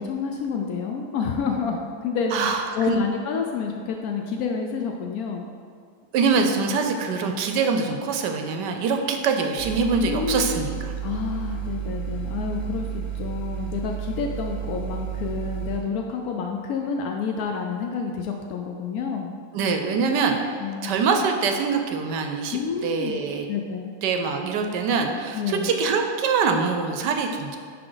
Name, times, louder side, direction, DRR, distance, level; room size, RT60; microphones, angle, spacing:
voice 1, 0.0-2.3 2.7-5.5 10.0-10.7 11.0-19.3 20.6-20.9 22.5-23.2 23.5-23.9 25.3-25.8, left 5 dB, 85° left, 2 dB, 0.8 m, -29 dB
voice 2, 2.3-3.0 6.1-10.9 19.5-20.6 20.8-23.5 24.0-27.6, right 5 dB, 70° right, 4 dB, 1.1 m, -24 dB
sound 1, 9.6-15.8, right 9 dB, ahead, 0.4 m, -32 dB
10.0 x 3.8 x 3.8 m, 2.3 s
omnidirectional pair, 2.1 m